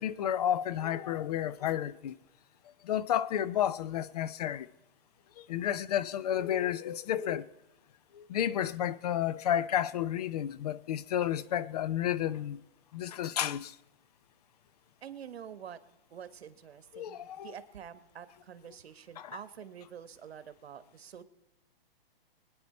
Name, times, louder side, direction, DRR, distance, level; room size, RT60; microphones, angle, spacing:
voice 1, 0.0-2.2 2.8-4.7 5.4-7.5 8.1-12.6 12.9-13.8 16.9-17.5 19.2-19.4, left 10 dB, 40° left, 0.5 m, -31 dB
voice 2, 15.0-15.8 16.1-21.2, right 8 dB, 80° right, 1.3 m, -47 dB
22.5 x 9.8 x 4.2 m
hypercardioid pair, 155°, 31 cm